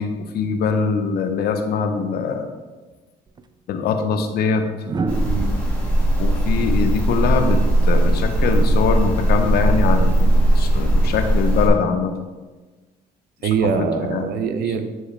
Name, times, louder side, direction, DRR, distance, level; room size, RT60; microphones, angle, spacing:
voice 1, 0.0-2.5 3.7-4.6 6.2-7.6 7.9-10.3 10.5-12.2 13.8-14.3, left 5 dB, 70° left, 7 dB, 0.9 m, -22 dB
sound 1, 3.3-3.4 4.8-7.9 9.4-9.7, right 4 dB, 25° right, 0.5 m, -31 dB
sound 2, 5.1-11.7, right 1 dB, 10° left, 2.0 m, -18 dB
voice 2, 5.2-5.6 13.4-14.9, right 6 dB, 70° right, 8 dB, 0.7 m, -23 dB
10.0 x 4.7 x 3.3 m, 1.3 s
cardioid pair, 110°, 17 cm